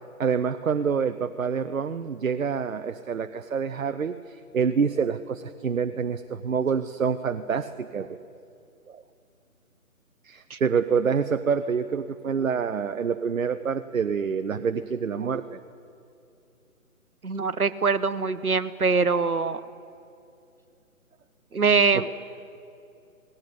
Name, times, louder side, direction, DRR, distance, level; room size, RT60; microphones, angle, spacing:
voice 1, 0.2-8.2 8.9-9.0 10.2-15.6 21.9-22.2, right 6 dB, 65° right, 9 dB, 0.9 m, -27 dB
voice 2, 17.2-19.6 21.5-22.1, right 4 dB, 80° right, 12 dB, 1.2 m, -23 dB
18.0 x 16.5 x 9.7 m, 2.6 s
figure-of-eight pair, 145°, 43 cm